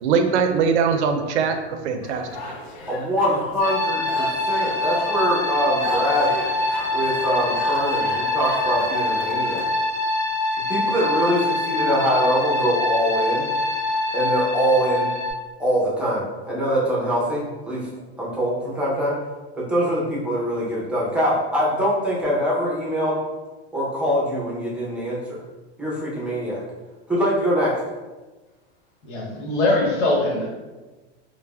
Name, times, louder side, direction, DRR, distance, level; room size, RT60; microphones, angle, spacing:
voice 1, 0.0-2.3, right 6 dB, 75° right, 5 dB, 0.5 m, -21 dB
sound 1, 2.0-9.7, left 3 dB, 50° left, 0.5 m, -34 dB
voice 2, 2.9-6.3 6.9-9.6 10.7-13.5 14.1-15.1 15.6-17.9 18.2-19.2 19.5-23.2 23.7-25.4 25.8-26.6 27.1-27.8, equal, 5° right, -7 dB, 0.6 m, -23 dB
sound 2, 3.6-15.3, left 2 dB, 30° left, 0.9 m, -24 dB
voice 3, 29.0-30.5, left 2 dB, 85° left, -3 dB, 1.1 m, -22 dB
3.2 x 2.1 x 2.2 m, 1.2 s
hypercardioid pair, 125°, 34 cm